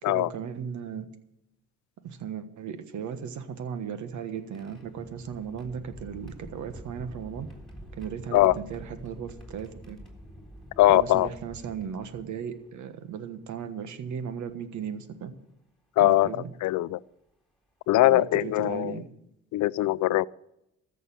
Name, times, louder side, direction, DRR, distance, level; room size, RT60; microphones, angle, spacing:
voice 1, 0.0-1.1 2.0-7.5 7.9-10.0 10.9-15.3 16.0-16.5 18.0-19.1, right 7 dB, 75° right, 10 dB, 1.4 m, -36 dB
sound 1, 3.4-12.7 13.6-13.7 15.1-15.4 16.1-16.3 17.9-18.0 18.4-18.7, equal, ahead, 3.8 m, -47 dB
voice 2, 10.8-11.3 16.0-16.3 16.6-17.0 17.9-19.0 19.5-20.3, left 16 dB, 75° left, 20 dB, 0.5 m, -21 dB
14.0 x 6.7 x 9.3 m, 0.84 s
cardioid pair, 90°, 30 cm